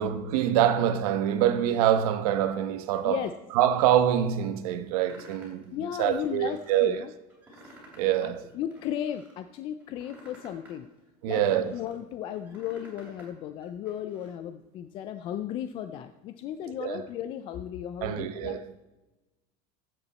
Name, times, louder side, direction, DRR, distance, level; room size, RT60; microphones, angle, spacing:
voice 1, 0.0-3.2 3.5-7.0 8.0-8.5 11.2-11.7 16.8-17.0 18.0-18.6, right 10 dB, 75° right, 1.1 m, -25 dB
sound 1, 5.0-5.6 6.1-6.8 7.3-8.2 8.5-9.3 9.8-11.9 12.3-13.3 13.6-14.3, equal, 5° right, 3.3 m, -52 dB
voice 2, 5.7-7.1 8.2-10.9 11.3-18.6, left 10 dB, 25° left, 0.3 m, -35 dB
15.0 x 8.1 x 4.2 m
cardioid pair, 180°, 19 cm